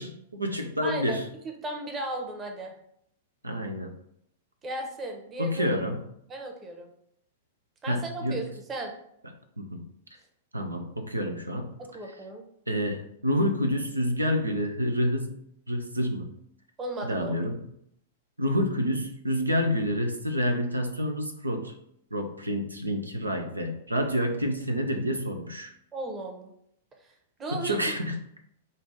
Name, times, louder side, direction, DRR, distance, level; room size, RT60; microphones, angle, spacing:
voice 1, 0.0-1.2 3.4-3.9 5.4-6.0 7.8-8.4 9.6-9.8 10.5-11.7 12.7-15.4 15.7-16.3 17.1-17.6 18.4-21.7 22.1-25.7 27.6-28.2, equal, 90° right, 5 dB, 0.5 m, -28 dB
voice 2, 0.8-2.7 4.6-5.7 6.3-6.9 7.8-8.9 11.8-12.4 16.8-17.3 25.9-26.5 27.0-27.1 27.4-27.7, right 2 dB, 20° right, 3 dB, 0.9 m, -36 dB
5.3 x 2.5 x 3.9 m, 0.73 s
figure-of-eight pair, 100°, 0 cm